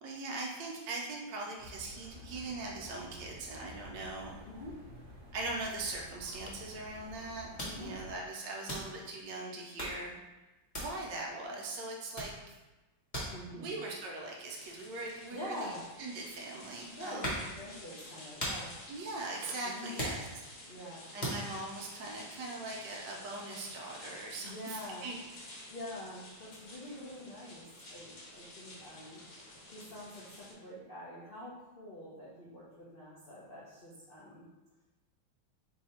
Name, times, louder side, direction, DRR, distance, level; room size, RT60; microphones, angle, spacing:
voice 1, 0.0-4.4 5.3-7.5 7.8-10.2 10.8-12.4 13.5-17.4 18.9-20.2 20.7-20.8 21.1-25.6, right 2 dB, 70° right, -1 dB, 1.2 m, -41 dB
sound 1, 1.6-8.1, equal, 55° right, 1.1 m, -51 dB
voice 2, 7.6-7.9 13.3-13.7 15.3-15.8 17.0-18.7 19.6-20.0 20.7-21.2 24.4-25.0 25.7-29.2 29.7-34.5, left 1 dB, 75° left, -7 dB, 0.5 m, -45 dB
sound 2, 7.6-8.3 8.6-9.2 9.6-10.1 10.7-11.3 11.7-11.9 12.1-16.3 16.8-17.6 18.0-20.7 21.2-21.5, equal, 25° left, 1.0 m, -40 dB
sound 3, 14.5-30.5, left 1 dB, 55° left, 1.2 m, -51 dB
4.0 x 2.7 x 4.2 m, 1.1 s
omnidirectional pair, 2.2 m